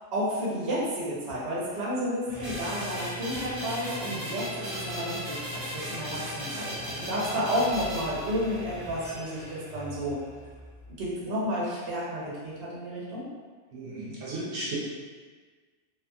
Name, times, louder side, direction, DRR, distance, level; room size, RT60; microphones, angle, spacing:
voice 1, 0.1-10.2 11.0-13.2, equal, 60° right, -7 dB, 1.0 m, -31 dB
sound 1, 2.3-11.4, equal, 10° right, 1.3 m, -42 dB
sound 2, 2.4-8.8, equal, 30° right, 0.7 m, -37 dB
voice 2, 13.7-14.8, right 2 dB, 80° right, -7 dB, 1.0 m, -35 dB
2.7 x 2.6 x 2.3 m, 1.4 s
omnidirectional pair, 1.3 m